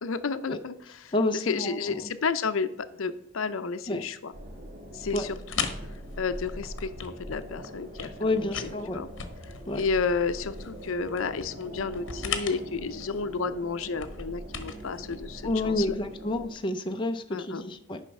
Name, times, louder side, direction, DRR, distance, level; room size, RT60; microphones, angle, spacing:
voice 1, 0.0-4.3 4.9-5.7 6.2-9.1 9.7-16.0 17.3-17.6, left 5 dB, 80° left, 11 dB, 0.6 m, -31 dB
voice 2, 1.1-1.8 3.9-4.0 5.1-5.3 8.2-9.0 9.7-9.8 15.4-18.0, left 2 dB, 25° left, 6 dB, 0.6 m, -29 dB
sound 1, 4.3-16.5, equal, 35° right, 1.9 m, -42 dB
sound 2, 5.1-16.2, left 6 dB, 60° left, 1.1 m, -40 dB
9.8 x 5.6 x 5.3 m, 0.78 s
head